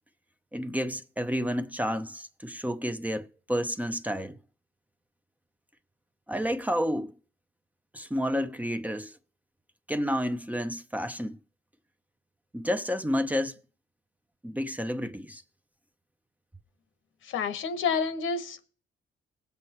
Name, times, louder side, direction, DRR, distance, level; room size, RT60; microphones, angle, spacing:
voice 1, 0.5-4.4 6.3-7.1 7.9-9.2 9.9-11.4 12.5-13.6 14.4-15.4, equal, 10° right, 0.7 m, -30 dB
voice 2, 17.2-18.6, left 5 dB, 85° left, 1.3 m, -29 dB
18.5 x 8.0 x 3.0 m
cardioid pair, 90°, 20 cm